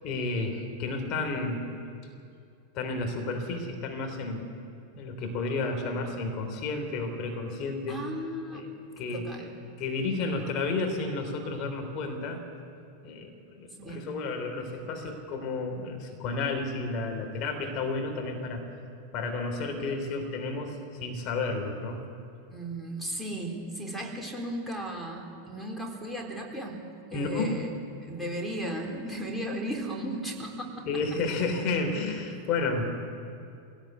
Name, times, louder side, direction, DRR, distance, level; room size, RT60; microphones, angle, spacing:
voice 1, 0.0-1.7 2.7-4.5 5.0-8.0 8.5-9.3 9.8-12.4 13.0-18.6 19.1-22.1 27.1-27.6 30.9-32.9, left 3 dB, 40° left, 4 dB, 3.6 m, -31 dB
voice 2, 7.9-8.6 9.1-9.5 13.8-14.1 14.8-14.9 22.5-26.8 27.1-27.7 28.1-30.9, right 1 dB, ahead, 0 dB, 4.0 m, -35 dB
20.0 x 18.0 x 8.2 m, 2.5 s
figure-of-eight pair, 90°, 0 cm